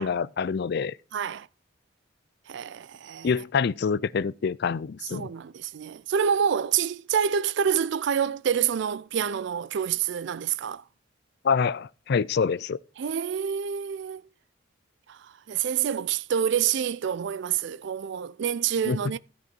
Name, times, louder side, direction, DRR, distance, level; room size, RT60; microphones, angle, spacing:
voice 1, 0.0-1.0 3.2-5.3 11.4-12.8 18.9-19.0, left 5 dB, 55° left, 0.4 m, -26 dB
voice 2, 1.1-1.5 2.5-3.3 5.1-10.8 13.0-14.2 15.1-19.2, right 8 dB, 65° right, 0.4 m, -27 dB
13.5 x 6.3 x 4.4 m
head